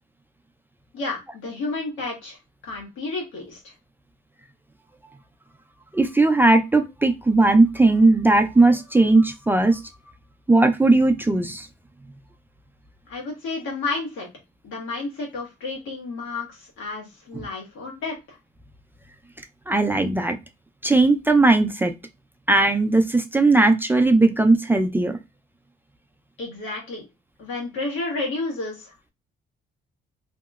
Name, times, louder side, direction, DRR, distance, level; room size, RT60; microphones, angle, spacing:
voice 1, 0.9-2.4 2.6-3.7 13.1-14.3 14.6-18.4 26.4-27.0 27.4-29.1, left 3 dB, 80° left, -1 dB, 1.5 m, -31 dB
voice 2, 5.9-9.8 10.5-11.7 19.7-20.4 20.8-21.9 22.5-25.2, right 2 dB, 10° right, 5 dB, 0.4 m, -18 dB
2.9 x 2.7 x 2.3 m, 0.24 s
cardioid pair, 90°, 20 cm